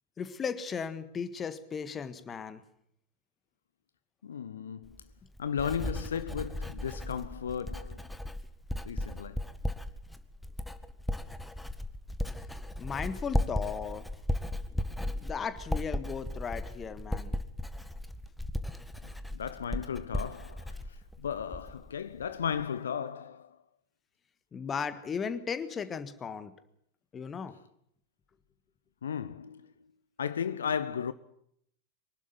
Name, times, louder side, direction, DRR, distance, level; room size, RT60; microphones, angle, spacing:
voice 1, 0.2-2.6 12.8-14.1 15.2-17.3 24.5-26.5 27.1-27.6, left 6 dB, 20° left, 1.6 m, -36 dB
voice 2, 4.2-5.0 5.4-8.0 8.8-9.4 19.0-20.8 21.2-23.6 29.0-29.6 30.2-31.1, left 7 dB, 65° left, 0.7 m, -35 dB
Writing, 4.8-21.9 22.2-22.6, left 1 dB, 5° left, 1.3 m, -36 dB
24.0 x 12.0 x 9.6 m
figure-of-eight pair, 90°, 0 cm